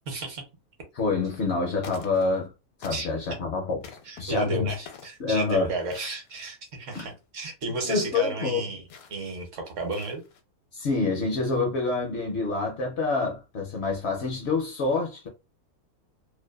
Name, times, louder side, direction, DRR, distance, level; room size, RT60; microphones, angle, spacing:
voice 1, 0.1-0.4 2.9-3.1 4.1-8.8 9.1-10.2, right 3 dB, 65° right, 1.0 m, -32 dB
voice 2, 0.9-2.5 2.8-3.8 4.2-4.7 5.2-5.7 7.0-7.1 7.8-8.7 10.7-15.3, left 4 dB, 65° left, 0.7 m, -27 dB
sound 1, 1.2-1.5 1.8-2.5 2.8-3.3 3.8-4.2 4.9-5.2 5.8-6.5 6.8-7.2 7.8-8.1 8.9-9.3 9.8-10.4, left 6 dB, 80° left, 1.0 m, -48 dB
2.5 x 2.1 x 2.2 m
omnidirectional pair, 1.5 m